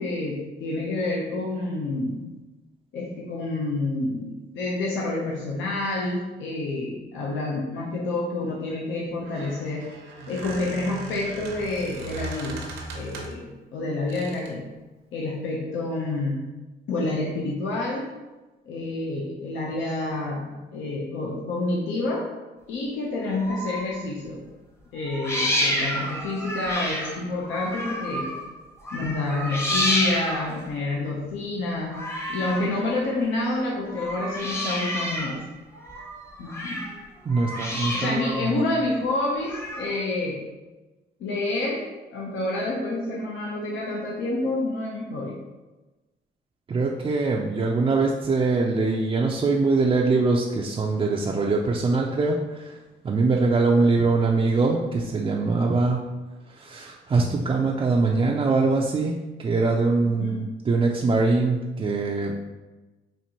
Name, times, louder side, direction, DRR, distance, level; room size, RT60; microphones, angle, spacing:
voice 1, 0.0-2.3 2.9-9.9 10.3-12.7 12.9-14.7 15.1-16.5 16.9-18.1 18.7-22.3 22.7-24.4 24.9-28.3 28.9-32.0 32.3-35.4 36.4-36.8 37.9-40.4 41.2-45.4 60.0-60.4, left 2 dB, 75° left, -3 dB, 0.7 m, -28 dB
Squeak, 9.1-13.5 14.1-14.6, right 2 dB, 85° right, 0.8 m, -38 dB
sound 1, 23.2-24.0 25.0-28.5 28.8-30.6 31.9-32.8 33.8-35.4 35.7-37.0 37.3-38.4 39.4-40.0, left 1 dB, 15° left, 0.7 m, -29 dB
voice 2, 37.3-38.6 46.7-52.8 53.0-56.1 56.5-62.3, right 3 dB, 25° right, -1 dB, 0.3 m, -23 dB
4.3 x 2.5 x 2.8 m, 1.1 s
cardioid pair, 90°, 20 cm